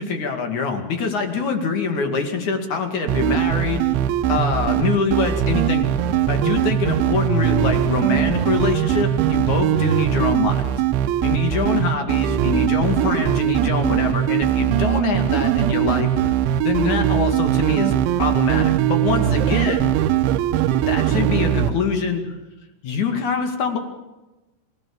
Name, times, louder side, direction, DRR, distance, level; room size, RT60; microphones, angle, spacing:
voice 1, 0.0-3.8 4.3-5.8 6.3-10.6 11.2-16.3 16.6-19.9 20.9-22.4 22.8-23.8, left 5 dB, 45° left, 5 dB, 3.2 m, -24 dB
sound 1, 3.1-21.7, right 11 dB, 80° right, 3.2 m, -20 dB
27.0 x 17.5 x 7.2 m, 1.1 s
omnidirectional pair, 5.5 m